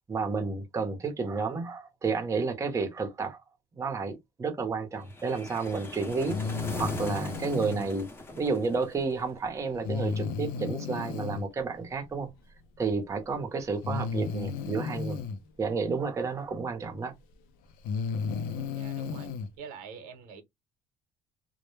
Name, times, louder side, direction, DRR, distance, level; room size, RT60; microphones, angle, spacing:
voice 1, 0.1-3.4 3.8-6.4 6.7-12.3 12.8-15.2 15.6-17.1, right 4 dB, 20° right, 0.7 m, -31 dB
sound 1, 5.1-9.3, left 2 dB, 15° left, 0.7 m, -40 dB
Breathing, 6.3-7.9 9.8-11.5 12.8-12.9 13.8-15.4 16.9-17.0 17.7-19.5, left 5 dB, 80° left, 0.5 m, -33 dB
voice 2, 18.7-19.3 19.6-20.4, right 6 dB, 85° right, 0.8 m, -45 dB
2.1 x 2.0 x 3.1 m
cardioid pair, 120°, 14 cm